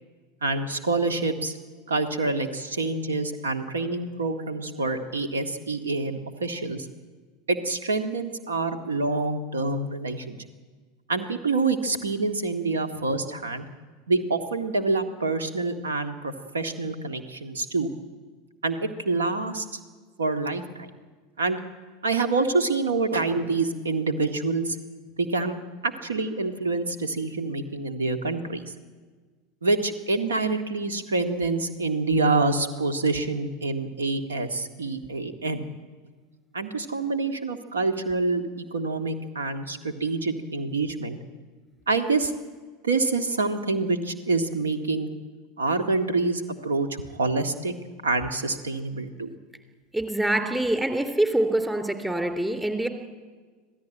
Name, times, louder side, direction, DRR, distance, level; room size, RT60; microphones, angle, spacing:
voice 1, 0.4-1.6 1.9-6.9 7.5-10.4 11.1-13.7 14.1-17.9 18.6-19.8 20.2-20.9 21.4-21.6 22.0-24.8 25.2-28.7 29.6-35.7 36.5-41.2 41.9-42.3 42.8-45.1 45.6-47.7 48.0-49.3, right 3 dB, 75° right, 8 dB, 1.8 m, -26 dB
voice 2, 49.9-52.9, right 1 dB, 10° right, 7 dB, 3.2 m, -25 dB
26.0 x 16.5 x 9.1 m, 1.4 s
figure-of-eight pair, 80°, 0 cm